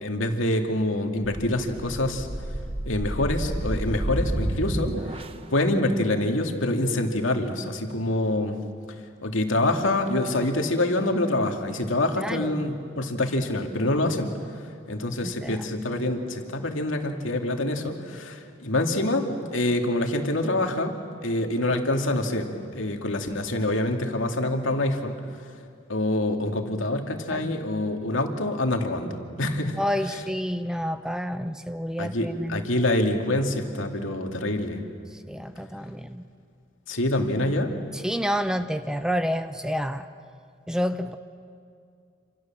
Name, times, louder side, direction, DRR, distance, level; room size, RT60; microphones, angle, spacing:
voice 1, 0.0-2.3 2.9-4.9 5.5-8.5 9.2-14.3 14.9-20.9 21.2-25.2 25.9-29.8 32.0-34.8 36.9-37.7, left 1 dB, 85° left, 4 dB, 2.5 m, -26 dB
sound 1, 1.2-5.6, right 1 dB, 30° right, 1.0 m, -30 dB
voice 2, 12.2-12.7 15.2-15.6 27.3-27.6 29.8-32.7 35.3-36.3 37.9-40.0 40.7-41.1, equal, 5° right, 10 dB, 0.7 m, -29 dB
27.5 x 27.0 x 7.5 m, 2.3 s
head